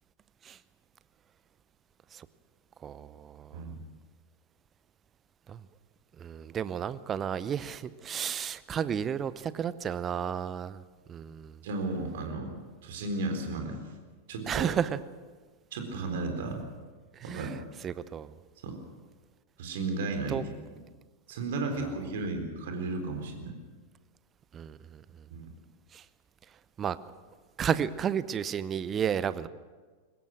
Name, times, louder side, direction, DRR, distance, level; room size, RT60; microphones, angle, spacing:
voice 1, 2.8-3.7 5.5-5.7 6.2-10.8 11.1-11.6 14.4-15.0 17.1-18.4 20.3-20.4 21.8-21.9 24.5-25.3 25.9-26.1 26.8-27.1 27.6-29.5, right 8 dB, 25° right, 16 dB, 0.8 m, -33 dB
voice 2, 11.6-13.8 14.3-14.7 15.7-16.6 17.2-17.5 18.6-18.8 19.6-20.4 21.3-23.5 25.3-25.5, right 3 dB, 55° right, 4 dB, 3.9 m, -34 dB
23.0 x 20.0 x 6.4 m, 1.4 s
figure-of-eight pair, 90°, 0 cm